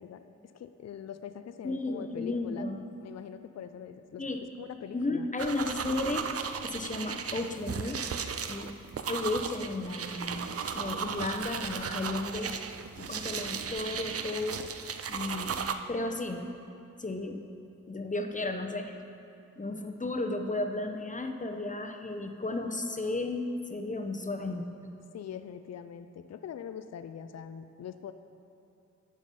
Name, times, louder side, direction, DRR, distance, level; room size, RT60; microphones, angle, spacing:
voice 1, 0.0-2.7 3.0-4.2 4.6-5.3 25.1-28.1, left 8 dB, 60° left, 10 dB, 0.4 m, -43 dB
voice 2, 1.6-2.8 4.2-4.4 4.9-6.3 6.6-8.0 8.4-8.7 9.1-12.6 13.0-14.6 15.1-16.5 17.0-17.4 17.9-18.9 19.6-23.4 23.7-24.7, left 2 dB, 25° left, 5 dB, 0.8 m, -34 dB
sound 1, 5.4-15.7, right 6 dB, 50° right, 0.5 m, -36 dB
9.4 x 4.9 x 5.4 m, 2.6 s
cardioid pair, 45°, 30 cm